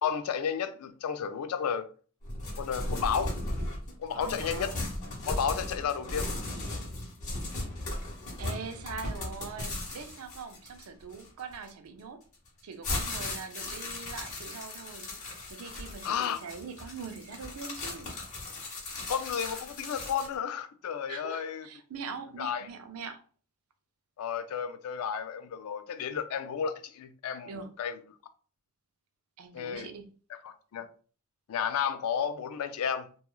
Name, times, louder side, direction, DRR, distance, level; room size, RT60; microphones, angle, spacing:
voice 1, 0.0-1.8 2.6-3.3 4.0-4.7 5.3-6.3 16.0-16.4 19.1-21.7 22.4-22.7 24.2-27.5 27.8-27.9 29.5-29.9 30.3-30.9 31.5-33.1, left 7 dB, 70° left, 0.3 m, -32 dB
sound 1, 2.2-11.7 12.3-20.4, left 2 dB, 35° left, 1.0 m, -37 dB
voice 2, 4.1-4.8 8.4-12.2 12.6-18.1 21.1-23.2 27.4-27.7 29.4-30.1, right 5 dB, 70° right, 0.4 m, -42 dB
3.0 x 2.3 x 2.2 m
head